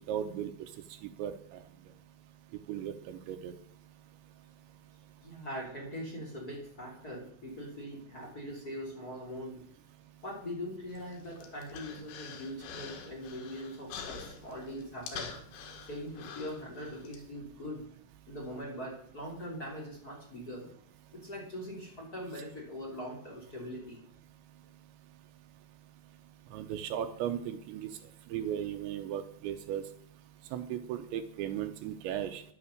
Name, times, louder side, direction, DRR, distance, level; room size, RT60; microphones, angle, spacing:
voice 1, 0.1-0.5 1.0-1.3 2.7-3.5 26.5-27.9 28.3-29.8 30.5-32.4, right 10 dB, 80° right, 8 dB, 3.0 m, -36 dB
voice 2, 5.2-9.6 10.2-15.3 15.9-17.8 18.3-20.7 21.1-24.0, equal, 25° left, -2 dB, 2.7 m, -42 dB
Human voice, 10.9-17.2, left 6 dB, 85° left, 4.1 m, -46 dB
11.0 x 9.9 x 6.6 m, 0.63 s
omnidirectional pair, 5.5 m